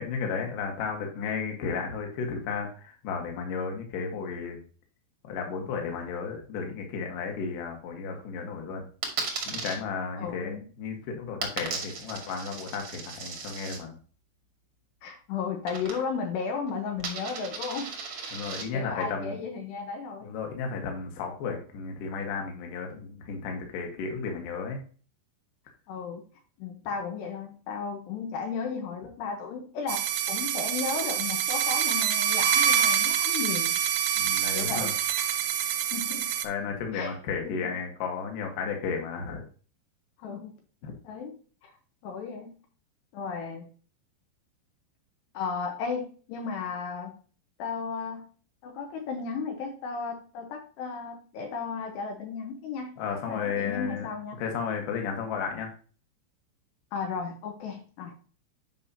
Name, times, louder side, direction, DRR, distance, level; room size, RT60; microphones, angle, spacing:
voice 1, 0.0-4.6 5.2-8.9 9.5-13.9 18.3-19.4 20.2-24.8 34.2-34.9 36.4-39.4 40.8-41.0 53.0-54.1 54.4-55.7, left 5 dB, 60° left, 3 dB, 2.6 m, -33 dB
Coin (dropping), 9.0-9.8 11.4-13.8 15.6-16.3 16.6-18.6, right 5 dB, 55° right, 1.7 m, -36 dB
voice 2, 10.2-10.7 15.0-18.4 18.7-20.3 25.9-26.2 26.6-33.8 34.5-35.0 35.9-36.3 36.9-37.2 37.4-37.7 40.2-40.5 41.0-41.4 41.6-41.7 42.0-42.5 43.1-43.7 45.3-47.2 47.6-48.3 48.6-53.0 53.3-54.4 56.9-58.1, left 5 dB, 75° left, 3 dB, 3.1 m, -34 dB
sound 1, 29.9-36.4, right 9 dB, 90° right, 2.9 m, -26 dB
9.0 x 5.4 x 2.8 m, 0.39 s
omnidirectional pair, 5.1 m